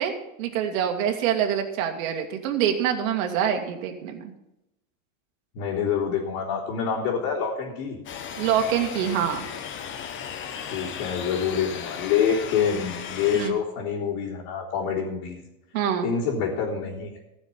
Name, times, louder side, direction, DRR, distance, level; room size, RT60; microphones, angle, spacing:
voice 1, 0.0-4.3 8.4-9.5 13.3-13.6 15.7-16.1, right 9 dB, 65° right, 3 dB, 2.2 m, -25 dB
voice 2, 5.5-8.0 10.7-15.4 16.0-17.2, left 7 dB, 55° left, -6 dB, 3.6 m, -26 dB
sound 1, 8.1-13.5, left 7 dB, 25° left, 1.1 m, -36 dB
15.0 x 6.5 x 7.4 m, 0.89 s
supercardioid pair, 140°, 42 cm